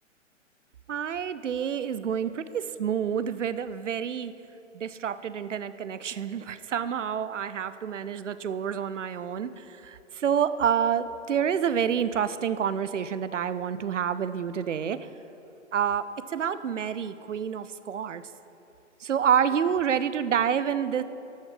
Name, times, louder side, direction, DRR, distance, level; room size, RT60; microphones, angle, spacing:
voice 1, 0.9-4.3 4.7-15.0 15.7-18.2 19.0-21.0, right 8 dB, 75° right, 13 dB, 0.7 m, -28 dB
14.0 x 6.4 x 5.8 m, 3.0 s
figure-of-eight pair, 125°, 37 cm